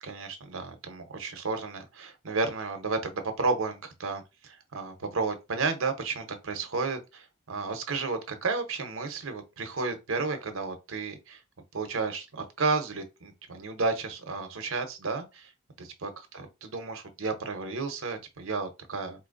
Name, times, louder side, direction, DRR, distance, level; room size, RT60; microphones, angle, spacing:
voice 1, 0.0-7.2 7.5-11.4 11.7-15.5 15.8-19.3, right 4 dB, 75° right, 0.8 m, -32 dB
4.3 x 2.6 x 2.5 m
head